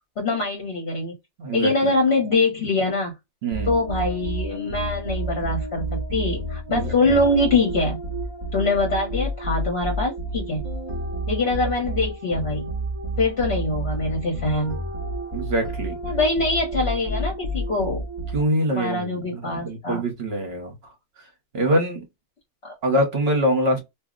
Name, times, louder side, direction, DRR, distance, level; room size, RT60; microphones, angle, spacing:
voice 1, 0.2-1.1 1.5-3.1 3.7-8.0 8.5-10.6 11.3-12.7 13.2-14.8 16.0-18.0 18.7-20.1 22.6-22.7, left 2 dB, 60° left, 1.2 m, -23 dB
voice 2, 1.4-1.9 3.4-3.7 6.7-7.2 15.3-16.0 18.3-20.7 21.5-22.1 22.8-23.8, equal, 60° right, 1.1 m, -24 dB
sound 1, 3.5-18.7, right 1 dB, 35° right, 0.4 m, -30 dB
2.7 x 2.0 x 3.6 m
omnidirectional pair, 1.2 m